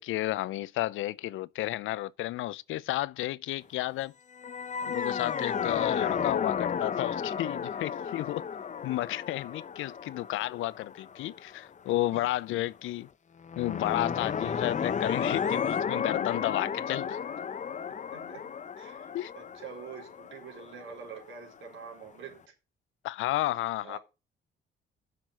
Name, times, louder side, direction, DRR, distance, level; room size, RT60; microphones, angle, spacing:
voice 1, 0.0-4.1 4.8-8.5 8.8-13.1 13.6-17.2 19.1-19.3 23.0-24.0, left 16 dB, 80° left, 0.5 m, -32 dB
sound 1, 4.3-11.6 13.4-21.2, left 7 dB, 40° left, 0.8 m, -33 dB
voice 2, 18.1-18.5 18.8-22.4 23.8-24.0, right 6 dB, 75° right, 4.2 m, -46 dB
7.3 x 6.0 x 7.8 m
cardioid pair, 90°, 20 cm